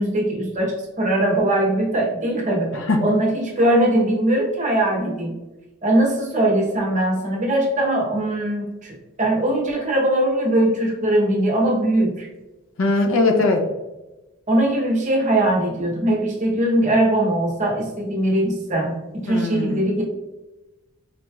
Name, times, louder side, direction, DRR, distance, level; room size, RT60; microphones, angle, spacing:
voice 1, 0.0-2.7 3.0-5.4 5.8-12.3 14.5-20.0, right 1 dB, 35° right, -1 dB, 0.8 m, -21 dB
voice 2, 2.7-3.1 12.8-13.7 19.3-19.9, left 2 dB, 60° left, 4 dB, 0.5 m, -20 dB
3.7 x 3.0 x 2.3 m, 1.0 s
head